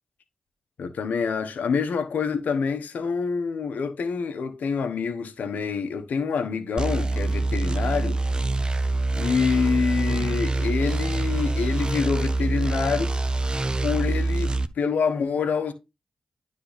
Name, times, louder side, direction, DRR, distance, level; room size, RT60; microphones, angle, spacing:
voice 1, 0.8-8.2 9.2-13.1 13.8-15.7, left 5 dB, 75° left, 1.0 m, -26 dB
sound 1, 6.8-14.7, right 2 dB, 30° right, 0.7 m, -25 dB
9.6 x 3.6 x 4.0 m
supercardioid pair, 40°, 3 cm